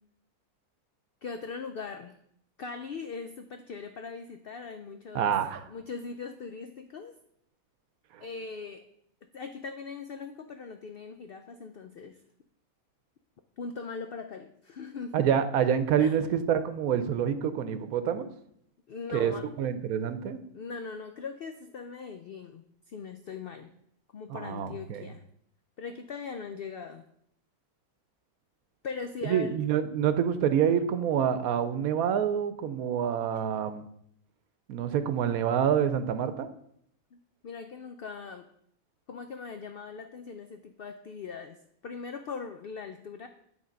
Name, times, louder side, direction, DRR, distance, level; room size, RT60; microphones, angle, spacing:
voice 1, 1.2-2.2 2.6-5.3 5.7-7.1 8.2-8.8 9.3-12.2 13.6-15.2 16.0-16.2 18.9-19.5 20.5-23.7 24.1-25.2 25.8-27.0 28.8-29.5 37.1-38.5 39.1-41.6 41.8-43.3, left 5 dB, 90° left, 7 dB, 0.5 m, -40 dB
voice 2, 5.1-5.6 8.1-8.2 15.1-18.3 19.1-20.4 24.3-25.1 29.2-33.8 34.7-36.5, right 8 dB, 75° right, 11 dB, 1.1 m, -27 dB
9.9 x 3.5 x 5.2 m, 0.70 s
omnidirectional pair, 1.6 m